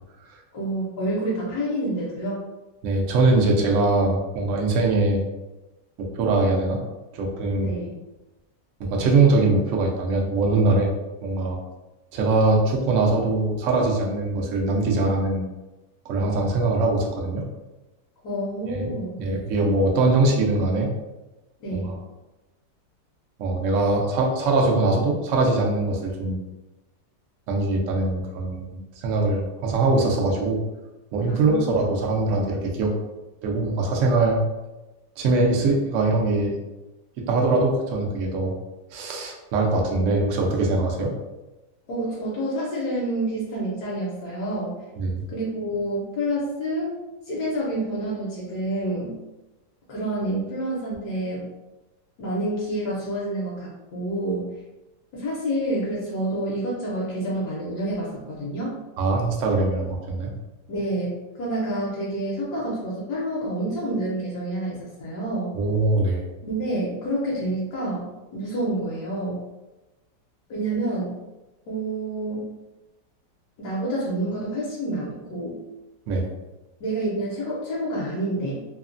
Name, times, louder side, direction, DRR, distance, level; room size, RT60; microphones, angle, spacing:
voice 1, 0.5-2.4 7.6-8.0 18.2-19.2 21.6-22.0 31.3-31.8 41.9-44.7 45.3-46.9 47.3-49.2 49.9-51.5 52.2-54.5 55.1-58.7 59.8-59.9 60.7-65.5 66.4-68.1 68.3-69.4 70.5-71.1 71.7-72.5 73.6-75.6 76.8-78.7, right 1 dB, 70° left, -6 dB, 1.1 m, -28 dB
voice 2, 2.8-5.2 6.0-6.8 7.1-7.8 8.8-10.9 11.2-11.6 12.1-15.4 16.0-17.4 18.7-18.9 19.2-20.9 21.7-21.9 23.4-26.4 27.5-30.6 31.1-32.9 33.4-34.4 35.2-36.6 37.3-38.5 38.9-41.1 45.0-45.2 59.0-60.3 65.6-66.2 76.1-76.3, right 2 dB, 85° right, 0 dB, 0.6 m, -22 dB
3.1 x 2.1 x 2.4 m, 1.1 s
omnidirectional pair, 1.9 m